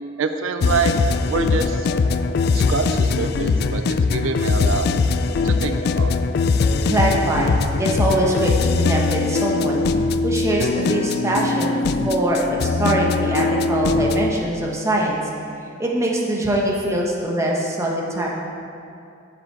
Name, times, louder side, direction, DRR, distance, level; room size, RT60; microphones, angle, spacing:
voice 1, 0.2-0.9 1.3-1.9 2.5-4.9 5.4-6.1, right 4 dB, 85° right, 8 dB, 0.4 m, -25 dB
sound 1, 0.6-14.3, left 4 dB, 55° left, 0.3 m, -21 dB
voice 2, 6.8-9.8 10.2-11.8 12.0-15.2 15.8-18.3, right 1 dB, 15° right, -3 dB, 1.0 m, -22 dB
7.3 x 7.2 x 4.6 m, 2.5 s
head